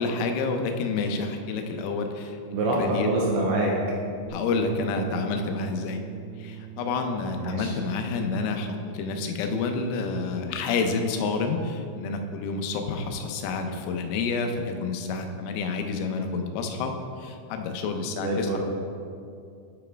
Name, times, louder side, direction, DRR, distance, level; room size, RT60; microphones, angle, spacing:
voice 1, 0.0-2.4 2.8-3.1 4.3-6.0 6.4-18.6, left 4 dB, 90° left, 5 dB, 3.4 m, -29 dB
voice 2, 2.5-3.7 7.4-7.7 18.2-18.6, right 2 dB, 80° right, -2 dB, 2.8 m, -25 dB
Bass guitar, 4.3-10.5, right 8 dB, 75° left, 2.2 m, -42 dB
9.4 x 7.2 x 3.4 m, 2.4 s
omnidirectional pair, 5.9 m